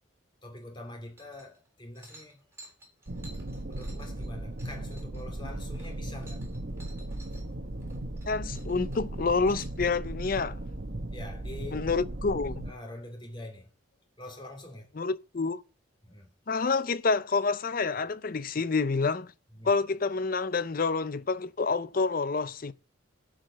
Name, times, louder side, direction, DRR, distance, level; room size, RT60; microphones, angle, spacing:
voice 1, 0.4-2.4 3.7-6.5 7.3-7.4 11.1-11.9 12.6-13.7 14.2-14.9 16.0-16.3 19.5-19.7, left 1 dB, 25° left, 2.5 m, -45 dB
sound 1, 1.2-1.7 1.9-7.4 7.8-8.3 8.5-9.8, right 1 dB, 15° right, 3.4 m, -54 dB
sound 2, 3.1-12.7, right 1 dB, 50° right, 1.0 m, -37 dB
voice 2, 8.3-10.6 11.7-12.7 15.0-15.6 16.5-19.3 19.6-22.7, left 4 dB, 45° left, 0.5 m, -28 dB
11.5 x 5.1 x 7.4 m
head